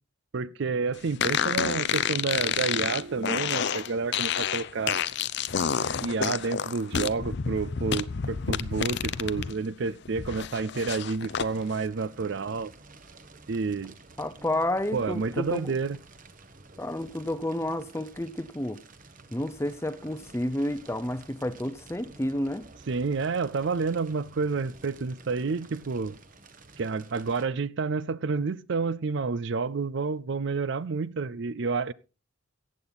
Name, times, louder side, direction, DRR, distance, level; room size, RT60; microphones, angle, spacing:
voice 1, 0.3-5.0 6.0-12.7 13.5-13.9 14.9-16.0 22.9-26.2 26.8-31.9, right 4 dB, 55° right, 0.5 m, -29 dB
sound 1, 1.2-9.5 9.9-11.5, left 7 dB, 50° left, 0.6 m, -29 dB
Fire, 11.3-27.5, right 3 dB, 40° right, 1.2 m, -51 dB
voice 2, 14.2-15.7 16.8-18.8 19.3-22.7, left 1 dB, 10° left, 0.7 m, -30 dB
15.0 x 8.7 x 4.1 m
head